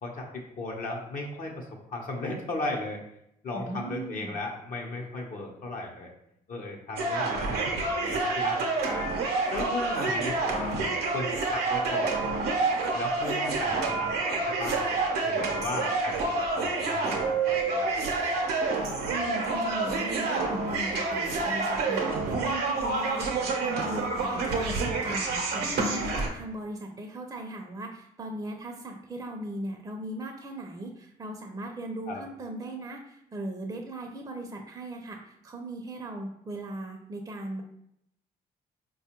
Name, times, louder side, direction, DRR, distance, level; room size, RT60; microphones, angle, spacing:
voice 1, 0.0-3.0 3.4-6.1 6.5-9.1 9.5-12.2 12.9-16.2 16.5-18.0 32.1-32.2, left 2 dB, 55° left, 0 dB, 0.7 m, -36 dB
voice 2, 3.5-4.4 19.1-37.6, right 1 dB, 25° right, 2 dB, 0.5 m, -38 dB
sound 1, 7.0-26.3, right 3 dB, 85° right, 0.7 m, -28 dB
4.3 x 2.3 x 2.9 m, 0.77 s
supercardioid pair, 70°, 16 cm